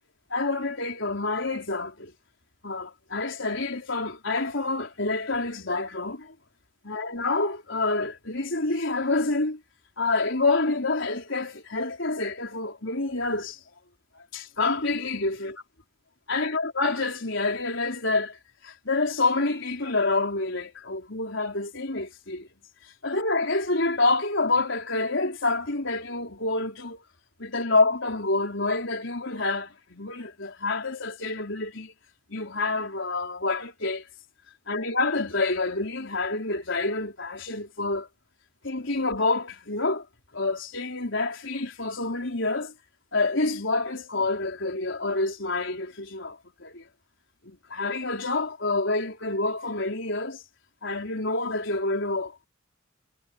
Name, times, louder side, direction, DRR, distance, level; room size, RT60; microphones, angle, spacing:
voice 1, 0.3-2.1 2.6-6.3 6.8-9.6 10.0-13.6 14.2-15.6 16.3-22.5 23.0-27.0 27.4-31.9 32.3-34.1 34.7-38.1 38.6-40.1 40.3-42.7 43.1-46.9 47.5-50.4 50.8-52.5, left 3 dB, 70° left, 4.0 m, -27 dB
head